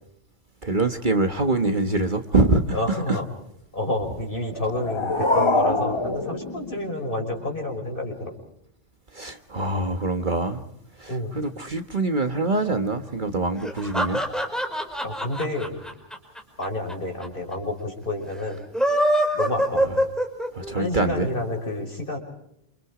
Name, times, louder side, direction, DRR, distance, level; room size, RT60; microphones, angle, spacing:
voice 1, 0.6-3.2 9.1-10.6 11.0-14.2 20.5-21.3, right 2 dB, 40° right, 7 dB, 1.6 m, -24 dB
voice 2, 2.7-3.2 3.7-8.3 11.1-11.3 15.0-15.8 16.6-18.6 19.3-19.9 20.7-22.2, left 1 dB, 45° left, 2 dB, 5.7 m, -29 dB
sound 1, 4.4-7.4, left 2 dB, 25° left, 1.3 m, -25 dB
sound 2, 13.6-16.9 17.2-17.3 17.5-17.6 18.6-20.7, equal, ahead, 4.9 m, -23 dB
28.0 x 28.0 x 5.0 m, 0.77 s
omnidirectional pair, 1.2 m